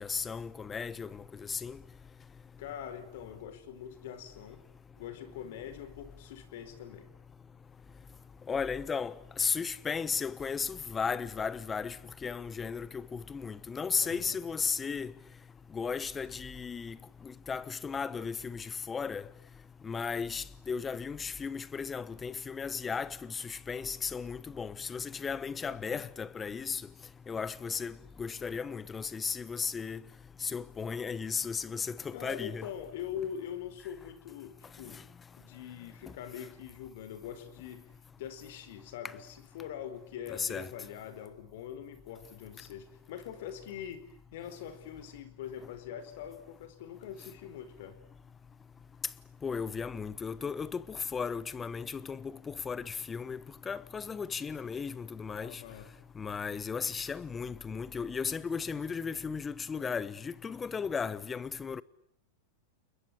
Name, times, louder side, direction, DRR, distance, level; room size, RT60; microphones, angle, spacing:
voice 1, 0.0-1.8 8.5-12.0 12.2-15.1 15.7-17.0 17.2-19.2 19.8-26.8 27.3-30.0 30.4-32.7 40.3-40.7 49.4-53.4 53.7-55.6 56.2-61.8, left 5 dB, 20° left, 1.1 m, -35 dB
voice 2, 2.6-4.6 5.0-7.1 14.0-14.4 25.6-26.0 32.1-35.0 35.4-37.9 38.2-44.0 44.3-48.0 55.4-55.9, left 9 dB, 70° left, 4.5 m, -43 dB
29.5 x 21.5 x 8.6 m
hypercardioid pair, 120°, 0 cm